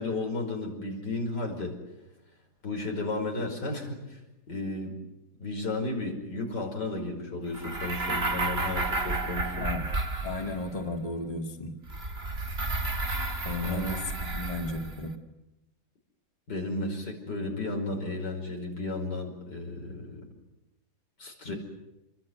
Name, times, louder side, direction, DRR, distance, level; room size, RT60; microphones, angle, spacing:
voice 1, 0.0-1.8 2.6-4.2 4.5-5.0 5.4-9.7 13.6-14.0 16.5-20.2 21.2-21.6, left 2 dB, 85° left, 2 dB, 5.9 m, -33 dB
sound 1, 7.5-10.8 11.9-15.0, right 2 dB, 35° right, 2.2 m, -32 dB
voice 2, 10.2-11.7 13.4-15.1 21.4-21.5, left 2 dB, 20° left, 3 dB, 2.3 m, -34 dB
27.0 x 22.0 x 9.4 m, 0.95 s
omnidirectional pair, 1.8 m